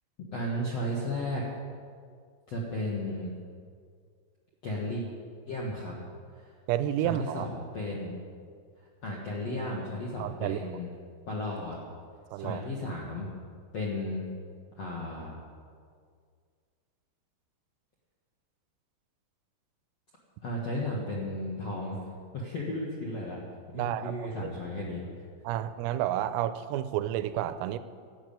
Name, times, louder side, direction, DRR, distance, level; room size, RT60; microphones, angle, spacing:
voice 1, 0.3-1.4 2.5-3.3 4.6-5.0 5.5-5.9 6.3-6.5 7.0-8.1 8.8-10.9 11.3-11.8 12.4-13.3 13.7-14.3 14.7-15.3 20.4-22.1 22.3-23.4 23.7-25.0, left 1 dB, 65° left, -3 dB, 1.6 m, -34 dB
voice 2, 6.7-7.5 10.2-10.7 12.3-12.6 23.8-24.3 25.4-27.8, right 12 dB, 90° right, 12 dB, 3.3 m, -30 dB
12.5 x 12.5 x 8.8 m, 2.1 s
omnidirectional pair, 6.0 m